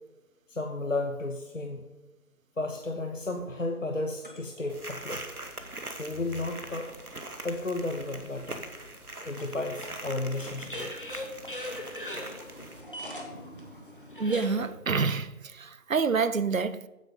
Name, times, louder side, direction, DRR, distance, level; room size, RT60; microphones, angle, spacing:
voice 1, 0.5-1.8 2.6-5.2 5.9-7.0 7.4-8.6 9.2-10.9, left 2 dB, 60° left, 1.3 m, -33 dB
sound 1, 3.1-4.8 5.5-5.6 9.4-14.7, left 1 dB, 35° left, 1.9 m, -41 dB
sound 2, 4.7-12.8, right 2 dB, 85° right, 2.0 m, -42 dB
voice 2, 14.2-16.9, right 5 dB, 65° right, 0.7 m, -27 dB
15.5 x 9.9 x 5.1 m
figure-of-eight pair, 175°, 43 cm